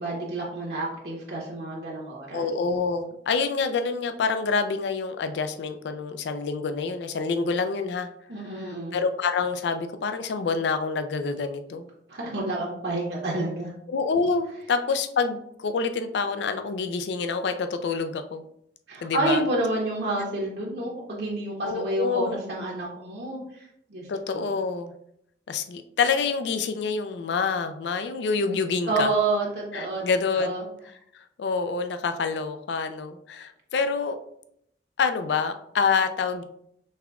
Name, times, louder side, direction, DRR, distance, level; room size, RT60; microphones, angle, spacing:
voice 1, 0.0-2.5 8.3-9.0 12.1-13.7 18.9-24.1 24.3-24.5 28.8-30.0 30.4-30.6, right 2 dB, 65° right, -3 dB, 1.0 m, -29 dB
voice 2, 2.3-8.1 8.5-11.9 13.9-18.4 19.0-19.4 21.6-22.4 24.1-24.9 25.5-29.1 29.7-30.7 31.1-34.2 35.0-36.4, left 4 dB, 70° left, 9 dB, 0.4 m, -27 dB
5.4 x 3.5 x 2.3 m, 0.73 s
head